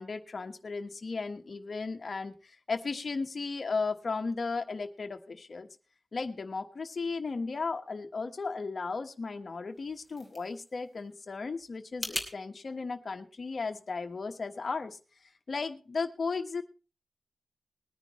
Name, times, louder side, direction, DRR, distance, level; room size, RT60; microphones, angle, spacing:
voice 1, 0.0-5.7 6.1-15.0 15.5-16.6, left 4 dB, 45° left, 5 dB, 1.2 m, -35 dB
sound 1, 9.7-12.3, equal, 15° right, 3.0 m, -41 dB
21.0 x 9.8 x 3.1 m, 0.35 s
wide cardioid pair, 130°, 0 cm